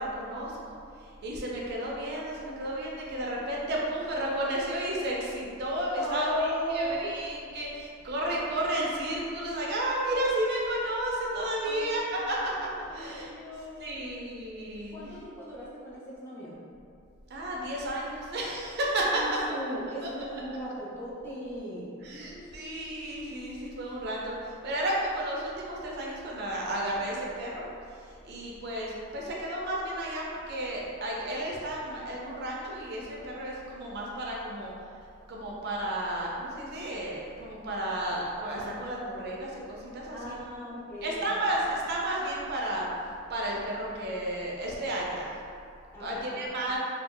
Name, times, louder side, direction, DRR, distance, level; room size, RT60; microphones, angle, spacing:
voice 1, 0.0-13.3 13.8-15.0 17.3-19.2 19.7-19.8 20.0-20.1 22.0-27.6 28.1-34.7 35.3-40.4 41.0-42.9 43.3-45.4 46.0-46.8, right 1 dB, 50° right, -3 dB, 0.4 m, -32 dB
voice 2, 6.0-7.1 11.6-12.1 12.9-14.0 14.9-16.6 19.1-22.8 40.1-41.5 45.9-46.4, equal, 10° left, -8 dB, 0.5 m, -37 dB
2.3 x 2.1 x 3.6 m, 2.4 s
head